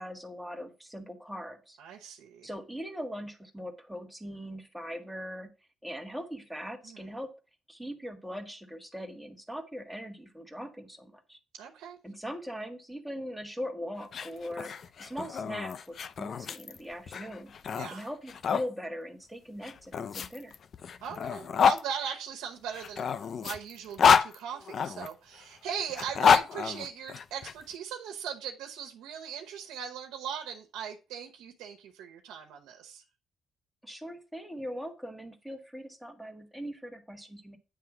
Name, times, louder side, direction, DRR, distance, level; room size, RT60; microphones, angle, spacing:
voice 1, 0.0-1.8 2.4-5.5 5.8-7.3 7.7-11.4 12.0-17.5 17.9-20.6 33.8-37.6, equal, ahead, 1.6 m, -40 dB
voice 2, 1.8-2.5 6.8-7.0 11.5-12.0 17.7-18.1 21.0-33.0, right 8 dB, 90° right, 0.9 m, -39 dB
sound 1, 14.0-18.7 19.6-21.8 22.7-25.1 25.9-27.5, left 7 dB, 55° left, 0.5 m, -27 dB
9.3 x 3.3 x 6.0 m
cardioid pair, 90°, 0 cm